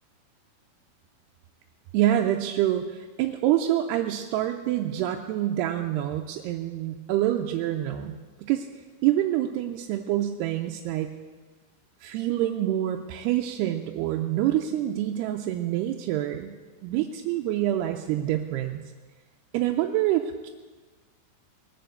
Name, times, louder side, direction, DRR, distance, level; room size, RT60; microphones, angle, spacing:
voice 1, 1.9-8.7 9.0-11.1 12.0-16.5 16.8-18.8 19.5-20.5, right 12 dB, 85° right, 4 dB, 2.6 m, -26 dB
20.5 x 6.8 x 7.8 m, 1.3 s
omnidirectional pair, 4.9 m